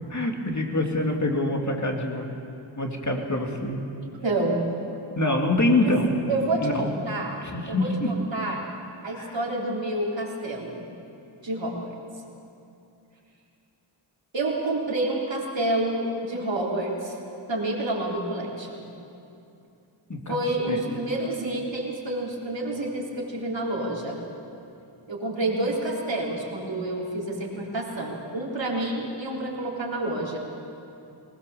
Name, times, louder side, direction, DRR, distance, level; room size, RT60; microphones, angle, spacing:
voice 1, 0.1-2.3 2.8-3.8 5.2-6.2 6.6-6.9 7.4-8.1 9.1-9.4 20.1-20.4 20.7-21.0, left 1 dB, 35° left, 1 dB, 2.6 m, -25 dB
voice 2, 4.2-4.6 5.8-5.9 6.3-7.3 7.7-8.6 9.0-10.9 11.4-12.0 14.3-17.2 17.5-18.9 20.3-24.2 25.1-30.4, right 2 dB, 70° right, -3 dB, 3.8 m, -28 dB
20.5 x 20.0 x 7.0 m, 2.7 s
wide cardioid pair, 60°, 47 cm